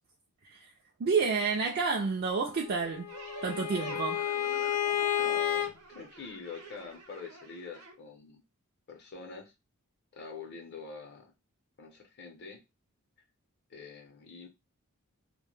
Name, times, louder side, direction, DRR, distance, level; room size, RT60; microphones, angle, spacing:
voice 1, 1.0-3.1 3.4-4.2, right 5 dB, 45° right, 0.3 m, -29 dB
Bowed string instrument, 2.6-5.7, left 10 dB, 90° left, 0.4 m, -31 dB
sound 1, 3.1-7.9, right 3 dB, 80° right, 0.8 m, -48 dB
voice 2, 5.0-8.4 8.9-9.5 10.1-11.3 11.8-12.6 13.7-14.5, left 4 dB, 50° left, 0.6 m, -45 dB
2.1 x 2.1 x 3.0 m
head